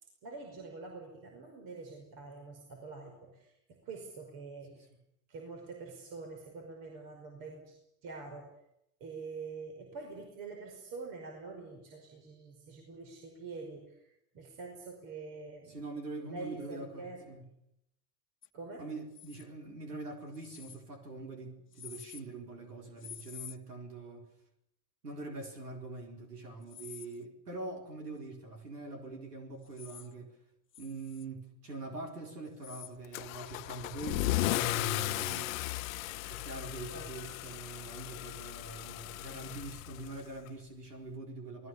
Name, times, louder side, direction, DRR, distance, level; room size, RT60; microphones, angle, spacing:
voice 1, 0.2-4.7 5.3-7.8 8.0-8.5 9.0-14.0 14.3-15.8 16.3-17.2 18.5-18.8 36.9-37.1 37.4-37.5, right 4 dB, 50° right, 3 dB, 5.4 m, -45 dB
voice 2, 15.7-17.4 18.8-24.3 25.0-30.3 30.8-35.5 36.3-41.7, right 3 dB, 80° right, 4 dB, 4.3 m, -44 dB
sound 1, 18.4-18.5 19.1-19.5 20.3-20.8 21.7-22.2 23.0-23.6 26.6-27.2 29.6-30.1 30.7-31.2 32.5-32.9 35.1-35.4, left 10 dB, 25° left, 1.4 m, -49 dB
Car / Engine starting / Accelerating revving vroom, 33.1-40.5, left 18 dB, 60° left, 0.8 m, -36 dB
28.0 x 19.5 x 7.2 m, 0.80 s
figure-of-eight pair, 75°, 47 cm